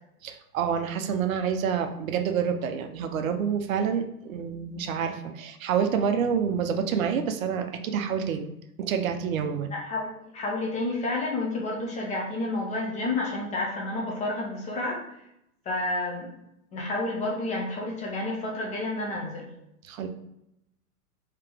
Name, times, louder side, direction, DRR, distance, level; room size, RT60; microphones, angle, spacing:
voice 1, 0.2-8.5 8.8-9.7 19.9-20.1, right 7 dB, 60° right, 6 dB, 0.6 m, -28 dB
voice 2, 9.7-15.0 15.7-16.3 16.7-19.5, left 2 dB, 15° left, -2 dB, 0.5 m, -30 dB
3.3 x 2.9 x 3.4 m, 0.82 s
hypercardioid pair, 110°, 47 cm